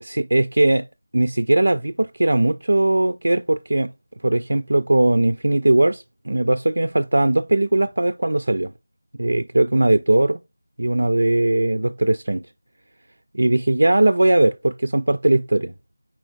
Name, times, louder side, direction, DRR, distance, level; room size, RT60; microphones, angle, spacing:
voice 1, 0.0-0.9 1.1-3.9 4.2-8.7 9.2-10.4 10.8-12.4 13.3-15.7, right 2 dB, 70° right, 0.4 m, -19 dB
4.4 x 4.3 x 2.6 m
figure-of-eight pair, 175°, 0 cm